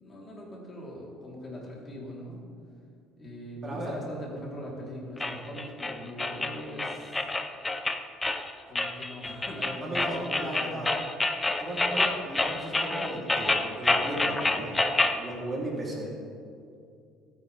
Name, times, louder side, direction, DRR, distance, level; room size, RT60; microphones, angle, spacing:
voice 1, 0.0-2.4 3.2-7.2 8.7-10.9, equal, 30° left, -4 dB, 3.9 m, -41 dB
voice 2, 3.6-4.0 9.8-10.9 11.6-14.8 15.1-16.1, right 1 dB, 25° right, -3 dB, 3.5 m, -36 dB
sound 1, 5.2-15.2, left 2 dB, 15° left, 0.8 m, -28 dB
25.5 x 9.7 x 3.6 m, 2.4 s
cardioid pair, 115°, 0 cm